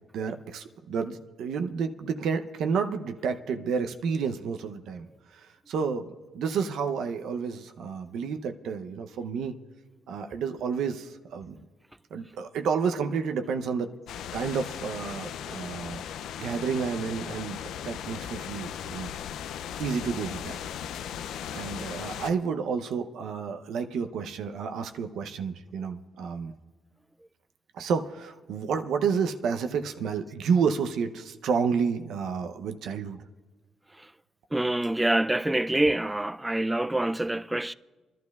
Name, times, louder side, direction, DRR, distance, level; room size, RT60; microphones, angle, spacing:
voice 1, 0.1-5.1 5.3-6.1 6.3-9.5 10.1-11.5 12.1-13.9 14.3-16.0 16.4-19.1 19.8-20.6 21.5-26.5 27.7-33.2, right 6 dB, 75° right, 0.6 m, -30 dB
sound 1, 14.1-22.3, left 9 dB, 80° left, 0.4 m, -37 dB
voice 2, 34.5-37.7, right 1 dB, 10° right, 0.3 m, -26 dB
28.0 x 11.5 x 2.3 m
cardioid pair, 90°, 0 cm